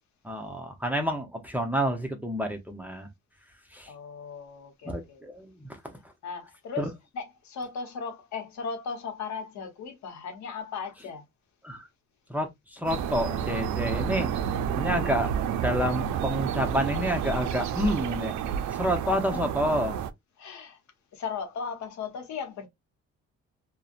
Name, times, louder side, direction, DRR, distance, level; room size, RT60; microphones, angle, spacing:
voice 1, 0.2-3.1 3.7-3.9 4.8-5.9 6.8-6.9 11.6-11.9 12.3-14.3 14.8-18.3 18.7-20.0, equal, 5° right, 0.7 m, -29 dB
voice 2, 3.9-5.2 6.2-11.2 20.4-20.8 21.1-22.7, left 5 dB, 70° left, 0.9 m, -37 dB
sound 1, 12.9-20.1, right 8 dB, 70° right, 0.4 m, -30 dB
2.5 x 2.1 x 2.4 m
cardioid pair, 90°, 30 cm